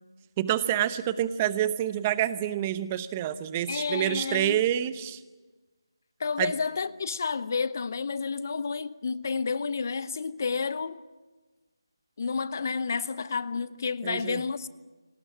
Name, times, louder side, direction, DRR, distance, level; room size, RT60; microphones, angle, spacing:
voice 1, 0.4-5.2 6.4-6.5 14.0-14.4, right 11 dB, 15° right, 0.8 m, -27 dB
voice 2, 3.7-4.6 6.2-11.0 12.2-14.7, left 5 dB, 40° left, 0.8 m, -30 dB
27.0 x 19.0 x 10.0 m
figure-of-eight pair, 165°, 2 cm